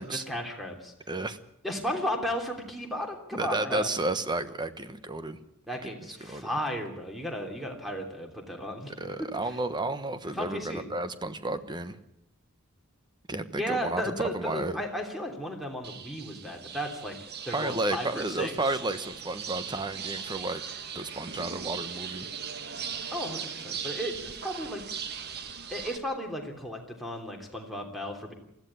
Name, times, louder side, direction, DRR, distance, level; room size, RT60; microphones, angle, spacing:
voice 1, 0.0-0.9 1.6-3.9 5.7-8.9 9.2-9.3 10.3-10.9 13.6-17.2 17.4-18.5 23.1-24.8 25.7-28.3, equal, ahead, 3 dB, 3.2 m, -34 dB
voice 2, 1.1-1.4 3.3-5.4 5.8-6.5 9.0-12.0 13.3-14.8 17.5-20.6 20.9-22.3, right 2 dB, 20° right, 11 dB, 1.1 m, -32 dB
sound 1, 15.8-26.0, right 7 dB, 45° right, 1.5 m, -39 dB
20.5 x 14.5 x 9.7 m, 0.81 s
head